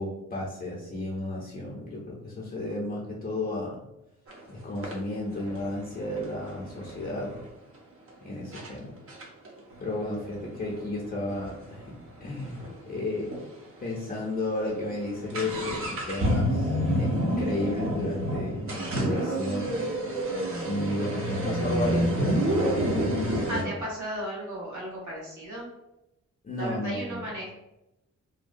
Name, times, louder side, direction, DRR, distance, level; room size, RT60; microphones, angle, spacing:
voice 1, 0.0-3.8 4.5-7.4 8.2-9.0 9.8-11.9 12.2-13.3 13.8-18.7 18.9-19.7 20.6-23.6 26.4-27.3, left 2 dB, 30° left, -5 dB, 0.5 m, -33 dB
sound 1, 4.3-4.4 4.8-7.5 8.1-8.2 8.5-8.7 9.1-12.8 13.0-13.1 13.3-13.4 14.0-14.2 14.5-23.6, right 1 dB, 50° right, 0.6 m, -29 dB
voice 2, 23.5-25.7 26.6-27.5, equal, 85° right, -5 dB, 1.3 m, -35 dB
2.7 x 2.1 x 2.5 m, 0.91 s
wide cardioid pair, 115°, 29 cm